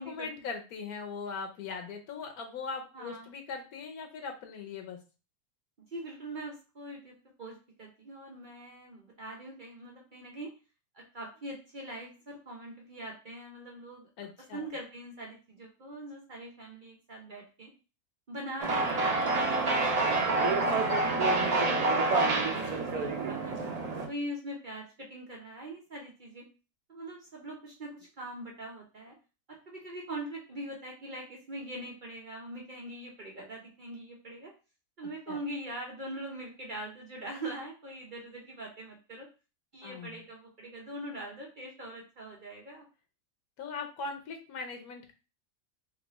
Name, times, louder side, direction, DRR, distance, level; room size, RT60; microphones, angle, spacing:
voice 1, 0.0-5.0 14.2-14.7 35.3-35.4 39.8-40.2 43.6-45.1, left 4 dB, 85° left, 4 dB, 1.3 m, -40 dB
voice 2, 2.9-3.3 5.9-10.5 10.9-14.1 14.5-17.7 18.3-22.7 22.9-23.5 24.1-26.4 26.9-29.1 29.5-34.5 35.0-39.3 39.7-42.8, right 1 dB, 50° right, -1 dB, 0.6 m, -42 dB
sound 1, 18.6-24.1, right 3 dB, 85° right, 0.3 m, -27 dB
3.3 x 2.6 x 3.0 m, 0.32 s
omnidirectional pair, 1.5 m